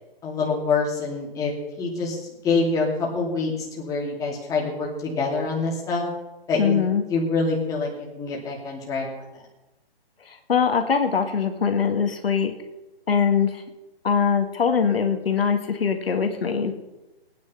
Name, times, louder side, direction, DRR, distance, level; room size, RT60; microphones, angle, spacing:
voice 1, 0.2-1.5 1.8-2.9 3.1-6.0 6.5-6.8 7.1-9.1, left 4 dB, 10° left, -3 dB, 2.7 m, -25 dB
voice 2, 6.6-7.0 10.3-12.5 13.1-13.6 14.0-16.7, left 6 dB, 70° left, 5 dB, 1.9 m, -22 dB
18.0 x 9.7 x 5.7 m, 1.0 s
hypercardioid pair, 155°, 30 cm